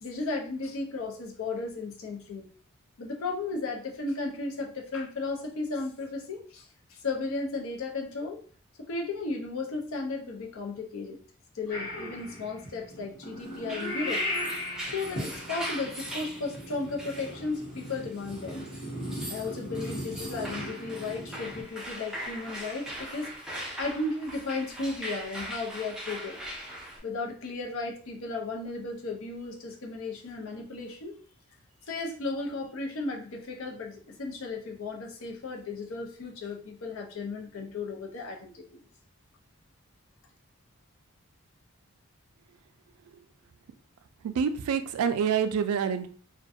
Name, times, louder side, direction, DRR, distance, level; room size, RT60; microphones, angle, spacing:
voice 1, 0.0-2.5 3.0-8.4 8.8-11.2 11.5-14.2 14.8-18.7 19.3-23.3 23.8-26.4 27.0-31.2 31.9-38.8, left 3 dB, 70° left, 0 dB, 0.5 m, -35 dB
Purr / Meow, 11.7-21.6, left 1 dB, 55° left, 0.9 m, -38 dB
sound 1, 13.5-27.0, right 1 dB, 5° right, 0.4 m, -40 dB
voice 2, 44.2-46.1, right 7 dB, 90° right, 10 dB, 0.3 m, -27 dB
2.4 x 2.2 x 2.6 m, 0.44 s
head